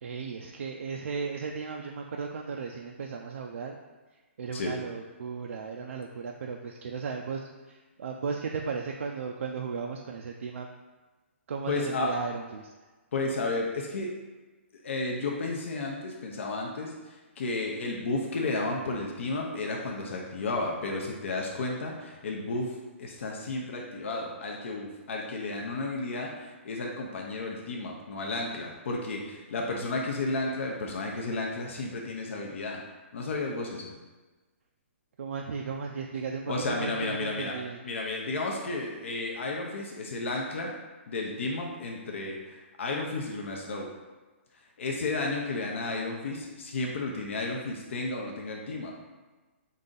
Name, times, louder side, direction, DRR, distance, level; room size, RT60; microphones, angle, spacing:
voice 1, 0.0-3.8 4.4-10.7 11.5-12.7 35.2-37.8, right 5 dB, 80° right, 2 dB, 0.3 m, -35 dB
voice 2, 11.7-12.1 13.1-14.1 14.8-32.8 33.1-33.9 36.5-37.6 37.8-40.7 41.1-43.9 44.8-48.9, left 2 dB, 70° left, 0 dB, 0.6 m, -32 dB
4.0 x 2.6 x 3.8 m, 1.3 s
hypercardioid pair, 155°, 7 cm